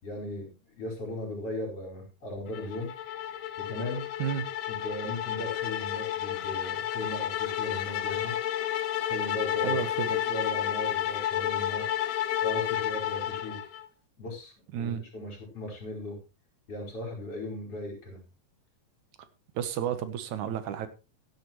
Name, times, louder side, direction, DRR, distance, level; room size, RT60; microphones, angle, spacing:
voice 1, 0.0-2.9 3.6-4.0 4.7-8.3 9.0-9.8 10.3-11.9 12.4-13.6 14.2-16.2 16.7-18.2, left 1 dB, 50° left, 6.0 m, -37 dB
sound 1, 2.5-13.9, left 11 dB, 65° left, 1.7 m, -31 dB
voice 2, 9.6-10.3 14.7-15.0 19.6-20.9, right 9 dB, 85° right, 2.5 m, -31 dB
16.5 x 10.0 x 3.1 m
omnidirectional pair, 3.3 m